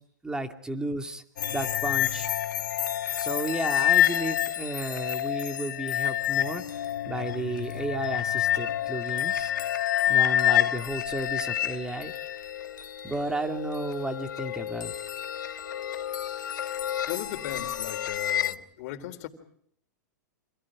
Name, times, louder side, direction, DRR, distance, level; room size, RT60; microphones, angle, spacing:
voice 1, 0.2-1.2 1.5-2.3 3.2-9.5 10.1-12.1 13.0-14.9, right 2 dB, 5° right, 5 dB, 2.5 m, -33 dB
sound 1, 1.4-18.5, left 11 dB, 85° left, 1.4 m, -28 dB
voice 2, 16.8-19.3, left 13 dB, 55° left, 8 dB, 3.8 m, -37 dB
30.0 x 26.5 x 5.0 m, 0.65 s
hypercardioid pair, 125°, 10 cm